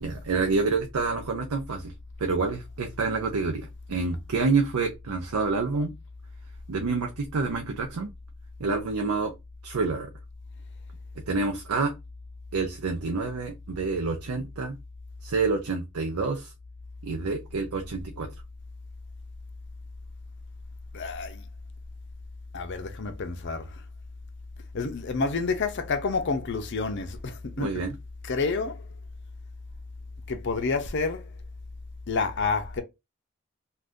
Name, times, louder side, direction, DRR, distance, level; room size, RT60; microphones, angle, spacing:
voice 1, 0.0-1.9 2.2-5.9 6.7-8.1 8.6-9.3 9.6-10.1 11.2-11.9 12.5-14.8 15.2-16.5 17.0-18.3 27.6-27.9, right 4 dB, 80° right, 0.5 m, -28 dB
voice 2, 20.9-21.4 22.5-23.8 24.7-27.7 28.2-28.9 30.3-31.3 32.1-32.8, left 4 dB, 55° left, 0.6 m, -29 dB
2.5 x 2.4 x 3.5 m
head